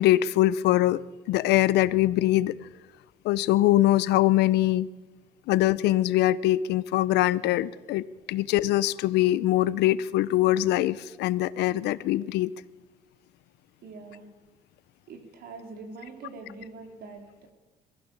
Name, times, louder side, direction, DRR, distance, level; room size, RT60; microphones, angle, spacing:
voice 1, 0.0-2.6 3.2-4.9 5.5-12.5, left 15 dB, 80° left, 18 dB, 0.8 m, -23 dB
voice 2, 13.8-14.3 15.1-17.5, right 3 dB, 70° right, 4 dB, 4.5 m, -44 dB
22.5 x 15.5 x 7.3 m, 1.2 s
cardioid pair, 110°, 17 cm